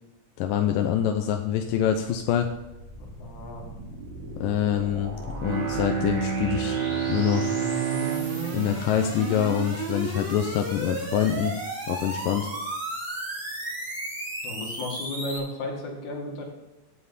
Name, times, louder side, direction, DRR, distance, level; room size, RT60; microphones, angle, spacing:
voice 1, 0.4-2.5 4.4-5.2 5.4-6.8 7.1-7.5 8.5-11.5 11.9-12.5, left 10 dB, 90° left, 5 dB, 2.4 m, -25 dB
sound 1, 2.1-15.4, right 2 dB, 35° right, 4.9 m, -35 dB
voice 2, 3.0-3.7 14.4-16.4, left 2 dB, 65° left, 0 dB, 3.6 m, -34 dB
Bowed string instrument, 5.3-10.2, right 7 dB, 65° right, 1.1 m, -30 dB
16.5 x 7.4 x 4.2 m, 1.0 s
omnidirectional pair, 3.8 m